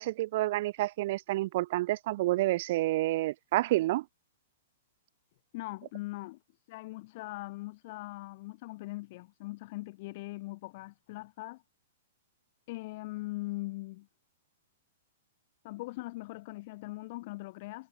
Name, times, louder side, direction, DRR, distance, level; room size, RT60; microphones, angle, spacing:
voice 1, 0.0-4.0, right 17 dB, 50° right, 0.4 m, -29 dB
voice 2, 5.5-6.4 6.7-11.6 12.7-14.1 15.6-17.9, left 21 dB, 45° left, 0.6 m, -41 dB
hypercardioid pair, 145°, 0 cm